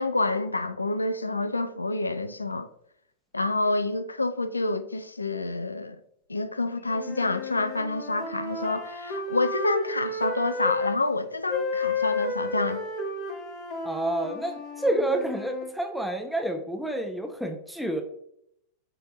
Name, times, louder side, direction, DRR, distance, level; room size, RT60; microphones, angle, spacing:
voice 1, 0.0-2.7 3.3-6.0 6.3-12.8, left 2 dB, 80° left, 0.4 m, -28 dB
sound 1, 6.9-11.0 11.5-15.7, left 2 dB, 45° left, 1.5 m, -32 dB
voice 2, 13.8-18.0, right 1 dB, ahead, 1.0 m, -29 dB
9.2 x 3.4 x 3.0 m
figure-of-eight pair, 90°, 0 cm